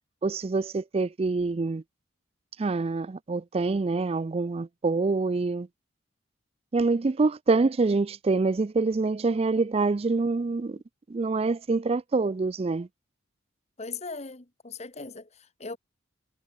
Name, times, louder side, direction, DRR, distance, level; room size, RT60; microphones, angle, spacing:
voice 1, 0.2-1.8 2.6-5.7 6.7-10.8 11.1-12.9, right 3 dB, 30° right, 0.4 m, -26 dB
voice 2, 13.8-15.8, left 4 dB, 35° left, 1.4 m, -39 dB
head